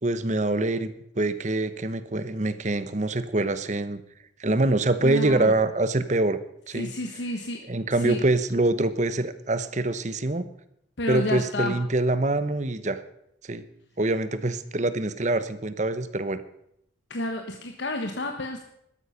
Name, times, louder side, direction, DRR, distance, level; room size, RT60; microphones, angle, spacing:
voice 1, 0.0-4.0 4.4-6.4 6.7-6.9 7.7-10.5 11.1-13.0 13.5-13.6 14.0-16.4, right 2 dB, 40° right, 13 dB, 1.0 m, -25 dB
voice 2, 5.0-5.5 6.7-7.6 8.0-8.2 11.0-11.8 17.1-18.6, left 1 dB, 70° left, 4 dB, 1.3 m, -30 dB
13.5 x 12.5 x 5.8 m, 0.76 s
head